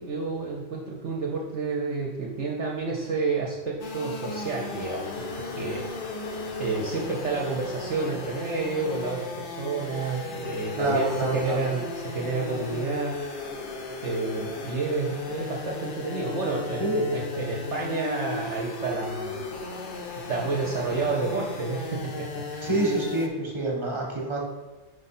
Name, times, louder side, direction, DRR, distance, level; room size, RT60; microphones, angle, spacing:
voice 1, 0.0-5.9 6.6-13.2 14.0-19.5 20.3-22.8, right 3 dB, 55° right, -3 dB, 1.0 m, -30 dB
sound 1, 3.8-23.3, left 4 dB, 45° left, 0.7 m, -36 dB
voice 2, 10.7-11.6 16.8-17.0 22.6-24.4, right 2 dB, 20° right, 0 dB, 1.2 m, -26 dB
5.2 x 4.8 x 4.2 m, 1.2 s
omnidirectional pair, 1.5 m